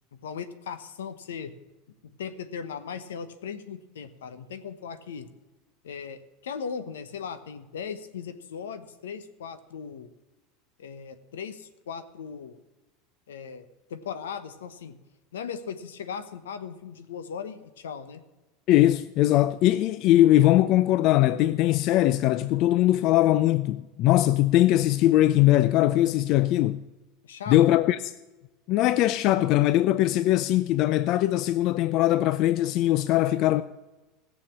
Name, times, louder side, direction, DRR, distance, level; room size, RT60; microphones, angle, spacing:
voice 1, 0.1-1.5 1.9-5.3 5.8-10.1 10.8-12.6 13.3-15.0 15.3-18.2 27.2-27.6, left 6 dB, 85° left, 1.1 m, -38 dB
voice 2, 18.7-26.8 27.5-28.1 28.7-33.6, left 14 dB, 55° left, 0.4 m, -21 dB
16.0 x 6.9 x 7.2 m
hypercardioid pair, 95°, 0 cm